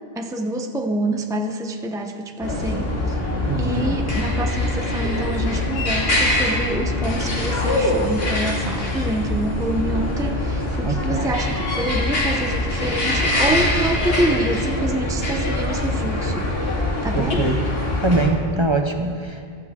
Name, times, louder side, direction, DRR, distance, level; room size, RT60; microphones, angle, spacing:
voice 1, 0.2-3.2 3.6-16.8 17.0-17.4, right 1 dB, 5° right, 4 dB, 0.7 m, -27 dB
sound 1, 2.4-18.3, left 1 dB, 70° left, 2.5 m, -23 dB
voice 2, 3.5-4.0 10.8-11.3 17.1-17.6 18.0-19.6, right 2 dB, 30° right, 4 dB, 0.8 m, -23 dB
23.0 x 13.0 x 3.6 m, 2.3 s
omnidirectional pair, 1.0 m